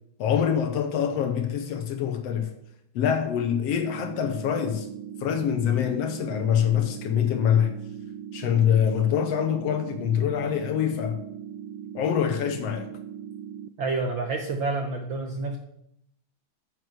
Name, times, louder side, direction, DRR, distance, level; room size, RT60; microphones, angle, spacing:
voice 1, 0.2-2.5 2.9-4.9 5.2-7.7 8.3-11.2 11.9-12.9, left 9 dB, 70° left, 1.7 m, -25 dB
sound 1, 3.7-13.7, right 9 dB, 85° right, 1.3 m, -39 dB
voice 2, 13.8-15.6, right 3 dB, 65° right, 1.2 m, -28 dB
9.5 x 7.9 x 6.4 m
omnidirectional pair, 3.4 m